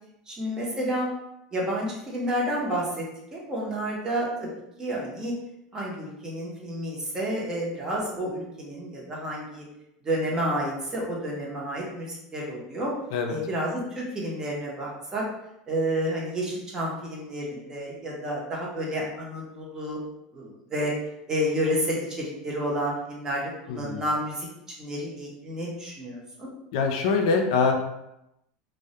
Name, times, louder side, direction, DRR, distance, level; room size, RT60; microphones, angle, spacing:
voice 1, 0.3-1.1 1.5-3.0 3.3-4.5 4.8-5.4 5.7-9.6 10.0-12.9 13.3-15.2 15.7-20.0 20.3-20.9 21.3-24.5 24.8-26.5, equal, 20° right, -4 dB, 0.7 m, -30 dB
voice 2, 23.7-24.0 26.7-27.7, left 5 dB, 70° left, 3 dB, 0.4 m, -24 dB
2.2 x 2.1 x 2.7 m, 0.86 s
supercardioid pair, 135°, 3 cm